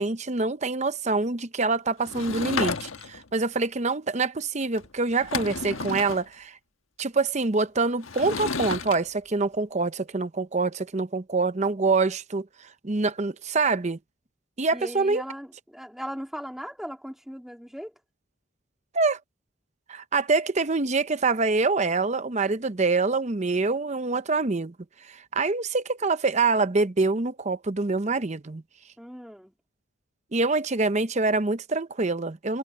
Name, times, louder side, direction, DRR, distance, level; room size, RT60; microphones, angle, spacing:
voice 1, 0.0-6.6 7.0-12.5 12.8-14.0 14.6-15.2 18.9-19.2 19.9-24.7 25.1-28.6 30.3-32.6, right 3 dB, 35° right, 0.7 m, -25 dB
Sliding door / Wood, 2.0-3.3 4.8-4.9 5.1-6.2 8.0-9.0, left 4 dB, 80° left, 1.4 m, -31 dB
voice 2, 14.7-17.9 29.0-29.5, equal, ahead, 3.2 m, -38 dB
head